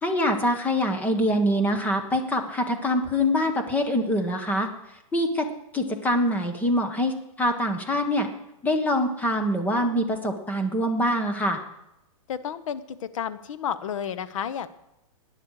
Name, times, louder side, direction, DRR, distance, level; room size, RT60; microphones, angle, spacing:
voice 1, 0.0-4.7 5.1-5.5 5.7-8.3 8.6-11.6, equal, 10° left, 5 dB, 1.3 m, -24 dB
voice 2, 12.3-14.7, left 8 dB, 65° left, 12 dB, 1.1 m, -31 dB
18.0 x 10.0 x 4.9 m, 0.89 s
hypercardioid pair, 155°, 18 cm